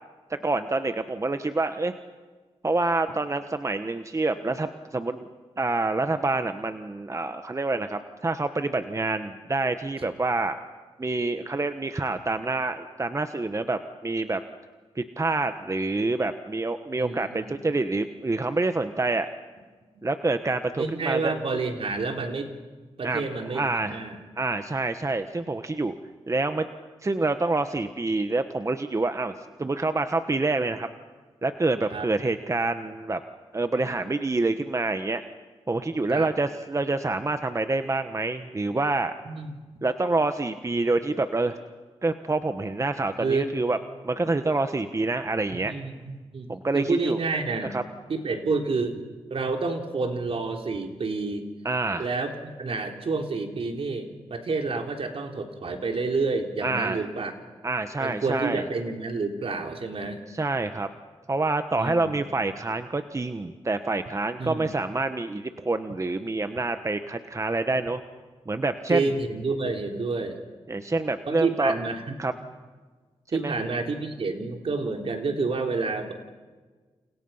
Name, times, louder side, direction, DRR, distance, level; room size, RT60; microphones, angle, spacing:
voice 1, 0.3-1.9 2.6-5.3 5.6-10.6 11.0-14.4 14.9-19.3 20.0-21.3 23.0-24.0 24.4-25.9 26.3-26.7 27.0-29.3 29.6-30.9 31.4-33.2 33.5-35.2 35.7-39.1 39.8-41.6 42.0-43.8 44.0-45.7 46.5-47.2 47.6-47.8 51.6-52.1 56.6-57.1 57.6-58.6 60.3-60.9 61.3-68.0 68.5-69.1 70.7-71.7 72.2-72.3 73.3-73.5, right 2 dB, 30° right, 8 dB, 1.3 m, -27 dB
voice 2, 17.0-17.5 20.0-20.1 20.8-22.5 23.0-24.2 31.9-32.1 36.1-36.3 39.3-39.6 43.2-43.5 45.6-47.7 48.1-49.0 49.3-51.5 52.0-57.3 58.0-60.2 61.8-62.2 64.4-64.7 68.9-70.4 71.3-72.0 73.3-76.1, right 3 dB, 60° right, 3 dB, 3.5 m, -29 dB
29.5 x 29.5 x 5.7 m, 1.4 s
cardioid pair, 65°, 11 cm